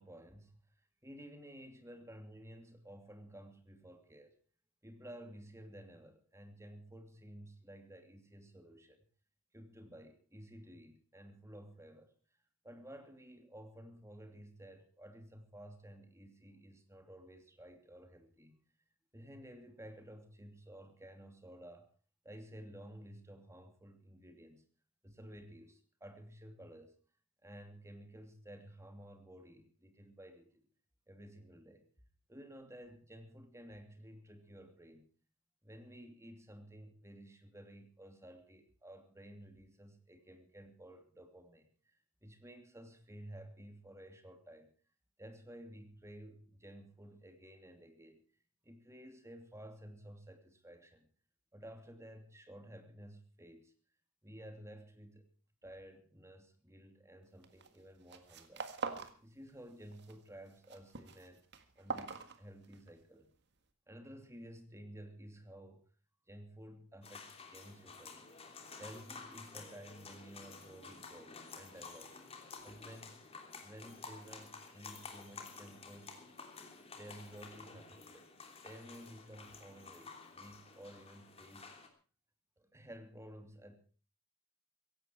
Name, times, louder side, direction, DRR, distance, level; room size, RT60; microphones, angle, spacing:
voice 1, 0.0-4.3 4.8-9.0 9.5-12.1 12.6-18.6 19.1-21.9 22.2-24.6 25.0-26.9 27.4-30.7 31.1-31.9 32.3-35.1 35.6-44.7 45.2-48.2 48.6-51.1 51.5-53.7 54.2-55.3 55.6-58.7 59.2-61.4 61.7-63.3 63.9-65.8 66.3-68.2 68.8-72.2 72.6-73.2 73.6-76.2 76.9-78.3 78.6-81.8 82.6-83.8, equal, 15° right, 6 dB, 2.7 m, -53 dB
sound 1, 57.4-57.8 58.0-59.2 59.5-60.1 60.5-62.9, right 4 dB, 55° right, 1.8 m, -43 dB
sound 2, 67.0-81.9, left 4 dB, 30° left, 3.1 m, -52 dB
16.5 x 16.5 x 4.5 m, 0.38 s
head